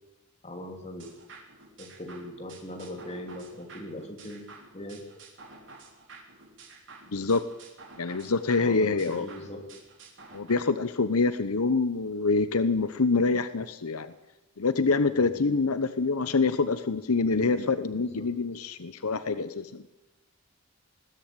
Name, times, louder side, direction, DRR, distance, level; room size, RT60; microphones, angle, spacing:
voice 1, 0.4-1.1 1.8-4.5 4.7-5.0 8.6-9.7 15.1-15.3 18.0-18.3, left 1 dB, 30° left, 3 dB, 3.3 m, -40 dB
sound 1, 1.0-10.6, right 3 dB, 55° right, 4.0 m, -50 dB
voice 2, 7.1-7.4 8.0-9.3 10.3-14.1 14.6-19.9, left 4 dB, 80° left, 12 dB, 0.9 m, -26 dB
21.0 x 16.5 x 8.9 m, 1.0 s
head